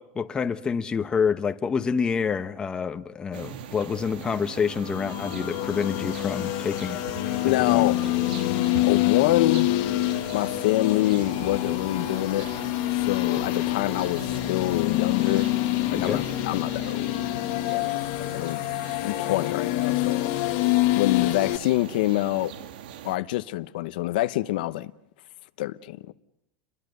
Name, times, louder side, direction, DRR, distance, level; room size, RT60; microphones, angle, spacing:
voice 1, 0.0-7.0 7.4-7.9 15.9-16.2, left 6 dB, 15° left, 1.0 m, -27 dB
sound 1, 3.3-23.2, right 9 dB, 90° right, 1.5 m, -41 dB
sound 2, 4.7-21.6, left 18 dB, 60° left, 1.2 m, -26 dB
voice 2, 7.4-8.0 8.8-9.7 10.3-12.5 12.9-15.5 15.9-17.1 17.7-18.6 19.0-20.3 20.9-22.5 23.0-24.9 25.6-26.1, left 16 dB, 75° left, 0.9 m, -26 dB
29.0 x 22.5 x 6.8 m
supercardioid pair, 150°, 5 cm